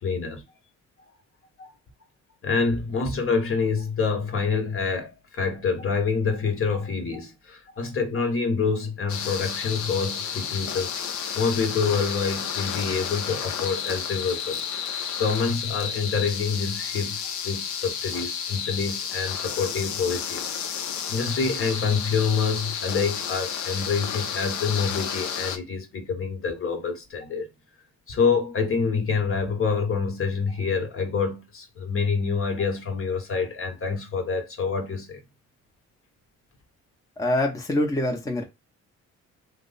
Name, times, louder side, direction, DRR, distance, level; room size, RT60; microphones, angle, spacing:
voice 1, 0.0-0.4 1.6-1.7 2.4-10.9 11.3-20.5 21.0-27.5 28.1-35.2, left 5 dB, 45° left, 1.0 m, -27 dB
sound 1, 9.1-25.6, left 7 dB, 70° left, 0.6 m, -31 dB
voice 2, 37.2-38.4, left 1 dB, 10° left, 0.7 m, -25 dB
3.0 x 2.1 x 3.9 m
cardioid pair, 90°, 30 cm